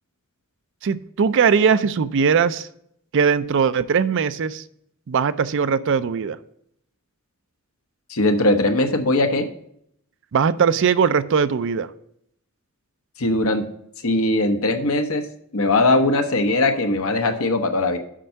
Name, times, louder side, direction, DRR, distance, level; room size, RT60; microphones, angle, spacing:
voice 1, 0.8-2.7 3.1-4.6 5.1-6.4 10.3-11.9, right 6 dB, 55° right, 14 dB, 0.4 m, -20 dB
voice 2, 8.1-9.5 13.2-13.7 14.0-15.3 15.5-18.0, left 2 dB, 65° left, 6 dB, 1.0 m, -20 dB
7.5 x 5.3 x 5.7 m, 0.71 s
head